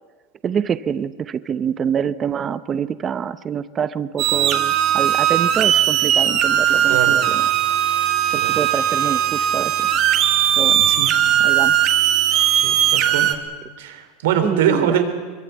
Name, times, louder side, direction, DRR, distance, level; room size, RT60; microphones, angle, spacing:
voice 1, 0.4-7.4 8.3-9.7 10.6-10.8 11.4-11.8 14.4-15.0, right 7 dB, 25° right, 15 dB, 0.8 m, -26 dB
sound 1, 4.2-13.3, right 11 dB, 45° right, 2.2 m, -18 dB
voice 2, 10.4-11.1 12.6-13.3 13.8-15.0, right 9 dB, 80° right, 7 dB, 3.6 m, -23 dB
23.0 x 22.5 x 8.2 m, 1.4 s
supercardioid pair, 135°, 0 cm